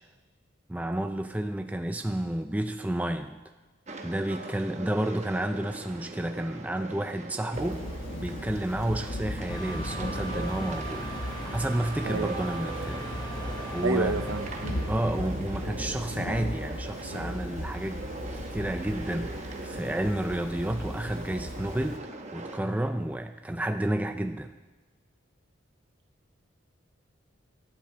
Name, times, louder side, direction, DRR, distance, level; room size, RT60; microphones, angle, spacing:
voice 1, 0.7-3.4 4.0-7.9 8.2-13.5 13.7-14.2 14.9-18.1 18.3-24.5, right 1 dB, 5° right, 7 dB, 0.3 m, -31 dB
sound 1, 3.9-22.6, right 2 dB, 35° right, 1.0 m, -41 dB
Thunder / Rain, 7.5-22.0, left 1 dB, 80° left, 1.2 m, -37 dB
sound 2, 9.5-14.9, right 1 dB, 20° left, 2.9 m, -38 dB
voice 2, 13.8-14.9, right 3 dB, 70° right, 10 dB, 0.7 m, -29 dB
19.0 x 12.0 x 3.8 m, 1.3 s
head